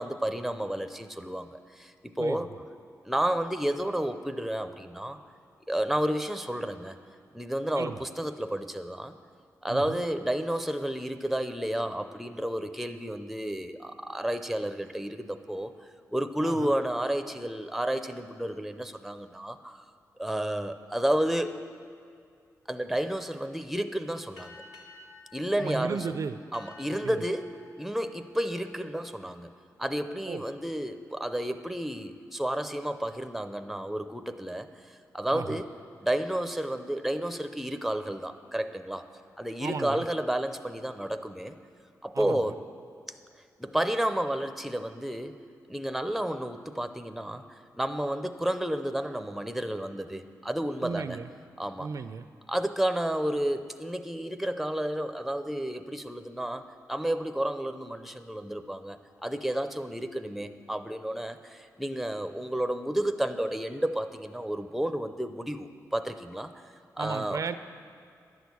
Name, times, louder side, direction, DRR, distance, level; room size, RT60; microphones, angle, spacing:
voice 1, 0.0-2.5 3.0-5.2 5.7-7.0 7.3-9.1 9.6-15.7 16.1-19.8 20.2-21.6 22.7-24.5 25.3-26.0 26.5-27.5 27.8-29.5 29.8-34.7 35.1-35.7 36.0-39.0 39.4-41.6 42.0-42.6 43.6-45.4 45.7-47.4 47.8-51.2 51.6-51.9 52.5-66.5 67.0-67.4, right 1 dB, ahead, 9 dB, 0.5 m, -31 dB
voice 2, 2.2-2.6 7.8-8.0 9.7-10.0 16.4-16.7 25.6-26.4 27.0-27.2 30.3-30.4 35.3-35.6 39.6-40.0 42.1-42.5 50.8-51.3 51.8-52.2 67.0-67.6, right 5 dB, 55° right, 11 dB, 0.4 m, -35 dB
sound 1, 24.4-29.4, left 3 dB, 80° left, 1.4 m, -53 dB
11.0 x 6.3 x 8.3 m, 2.3 s
cardioid pair, 85°, 7 cm